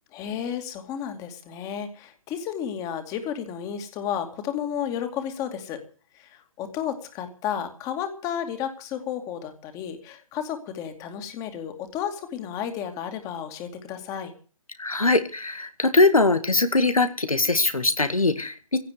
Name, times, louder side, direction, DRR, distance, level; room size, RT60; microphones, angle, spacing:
voice 1, 0.1-5.8 6.1-14.3, left 9 dB, 20° left, 7 dB, 2.6 m, -32 dB
voice 2, 14.8-18.8, left 3 dB, 85° left, 9 dB, 2.1 m, -21 dB
17.0 x 8.4 x 9.6 m, 0.39 s
figure-of-eight pair, 140°, 17 cm